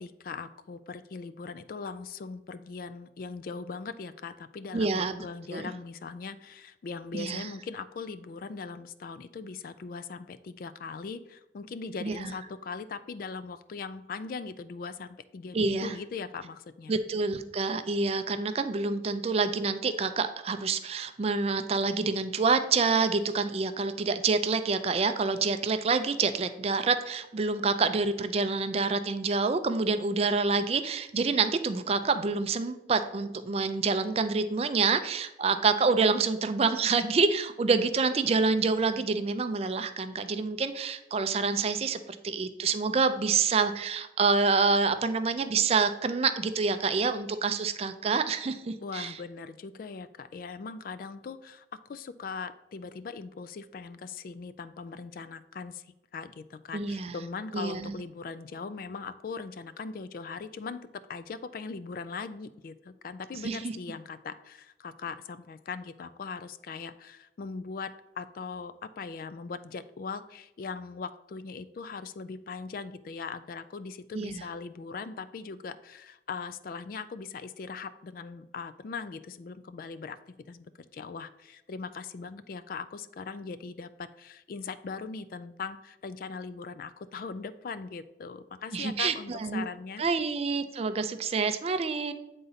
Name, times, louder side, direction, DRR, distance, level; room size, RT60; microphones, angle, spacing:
voice 1, 0.0-16.9 48.8-55.9 56.1-80.2 80.5-80.7 80.9-90.0, left 4 dB, 50° left, 12 dB, 0.3 m, -40 dB
voice 2, 4.7-5.3 5.5-5.7 7.1-7.5 12.0-12.3 15.5-15.9 16.9-49.1 56.7-57.1 57.5-57.9 63.4-63.8 74.1-74.4 88.7-89.6 90.0-92.1, right 4 dB, 35° right, 10 dB, 0.4 m, -27 dB
8.1 x 3.8 x 4.0 m, 0.93 s
head